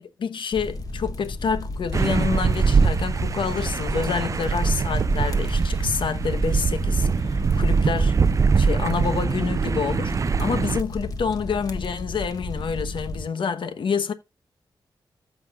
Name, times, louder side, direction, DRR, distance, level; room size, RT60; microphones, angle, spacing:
voice 1, 0.0-8.3 8.6-10.1 10.4-14.1, left 6 dB, 75° left, 1.0 m, -28 dB
sound 1, 0.5-13.2, left 2 dB, 45° left, 1.5 m, -33 dB
sound 2, 1.9-10.8, right 5 dB, 40° right, 0.4 m, -22 dB
14.5 x 6.2 x 2.4 m
wide cardioid pair, 95°, 8 cm